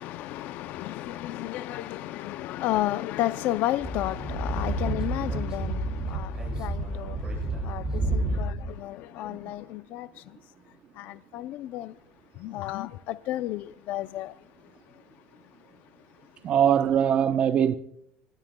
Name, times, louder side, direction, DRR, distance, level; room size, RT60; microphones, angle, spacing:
voice 1, 0.0-10.4 11.0-11.9 12.4-14.3, left 14 dB, 60° left, 0.5 m, -32 dB
Speech / Wind, 3.8-8.7, right 2 dB, 20° right, 7.5 m, -30 dB
voice 2, 16.4-17.7, right 9 dB, 40° right, 0.7 m, -22 dB
26.0 x 19.5 x 2.2 m
cardioid pair, 135°, 3 cm